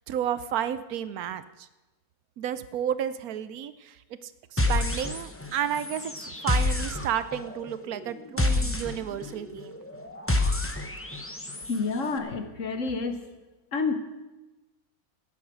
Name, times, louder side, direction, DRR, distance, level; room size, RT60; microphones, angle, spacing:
voice 1, 0.1-1.7 2.4-4.0 4.2-9.7, right 9 dB, 75° right, 14 dB, 1.1 m, -32 dB
sound 1, 4.6-5.5 5.7-11.8, left 2 dB, 10° left, 0.7 m, -29 dB
voice 2, 11.7-13.2 13.7-13.9, left 4 dB, 55° left, 8 dB, 1.5 m, -29 dB
16.0 x 9.6 x 6.2 m, 1.1 s
omnidirectional pair, 1.6 m